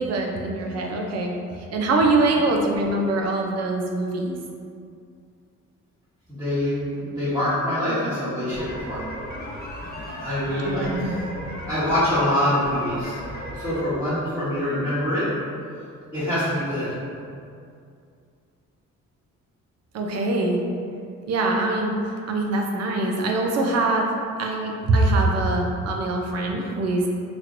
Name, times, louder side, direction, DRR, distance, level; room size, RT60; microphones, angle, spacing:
voice 1, 0.0-1.3 1.7-4.4 10.6-11.2 19.9-20.6 21.3-22.0 22.3-24.1 24.4-27.1, right 2 dB, 60° right, 1 dB, 0.5 m, -23 dB
voice 2, 6.3-9.0 10.2-11.2 11.7-15.3 16.1-16.9, left 1 dB, 10° right, -16 dB, 1.1 m, -25 dB
sound 1, 8.5-13.8, equal, 30° left, 0.5 m, -36 dB
3.0 x 2.9 x 2.5 m, 2.3 s
cardioid pair, 90°, 30 cm